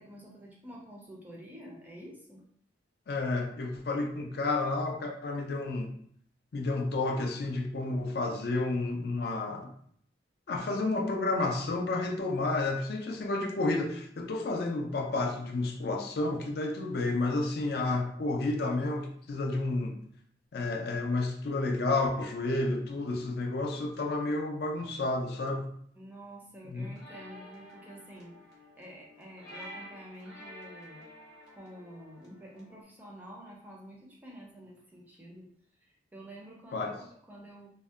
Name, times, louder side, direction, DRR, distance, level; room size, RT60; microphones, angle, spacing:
voice 1, 0.0-2.4 26.0-28.3 28.8-31.0 31.5-35.5 36.1-37.7, equal, 10° right, -2 dB, 0.4 m, -48 dB
voice 2, 3.1-5.9 6.5-9.7 10.5-20.0 20.5-25.7 26.7-26.9 36.7-37.0, left 2 dB, 60° left, 2 dB, 0.4 m, -31 dB
sound 1, 26.8-32.8, equal, 80° left, 0.9 m, -50 dB
2.6 x 2.1 x 2.3 m, 0.64 s
head